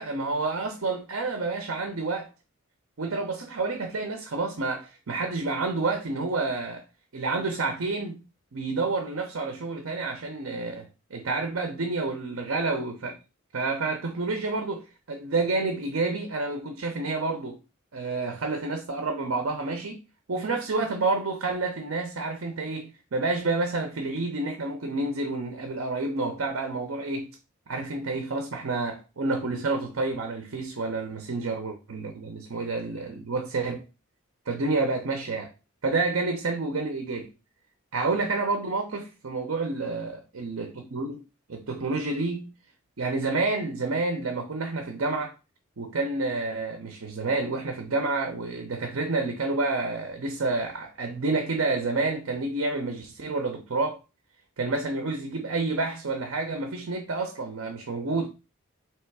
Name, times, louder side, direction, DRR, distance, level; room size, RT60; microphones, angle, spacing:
voice 1, 0.0-2.3 3.0-6.8 7.1-8.2 8.5-13.1 13.5-17.6 17.9-20.0 20.3-27.3 27.7-33.8 34.5-35.5 35.8-37.3 37.9-41.2 41.5-42.5 43.0-45.3 45.8-54.0 54.6-58.3, right 3 dB, 70° right, 0.7 m, -29 dB
3.4 x 3.0 x 4.6 m
head